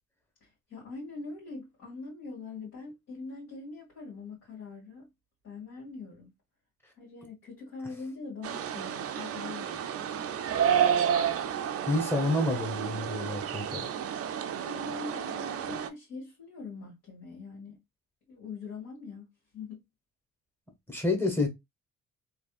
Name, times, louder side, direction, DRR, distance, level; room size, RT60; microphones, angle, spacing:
voice 1, 0.4-5.1 5.4-6.3 7.0-10.3 14.5-17.8 18.3-19.3 19.5-19.8, left 3 dB, 55° left, 2.2 m, -43 dB
sound 1, 8.4-15.9, right 8 dB, 50° right, 0.5 m, -30 dB
voice 2, 11.9-13.9 20.9-21.5, left 2 dB, 5° left, 1.4 m, -29 dB
3.4 x 2.6 x 2.4 m
cardioid pair, 90°, 30 cm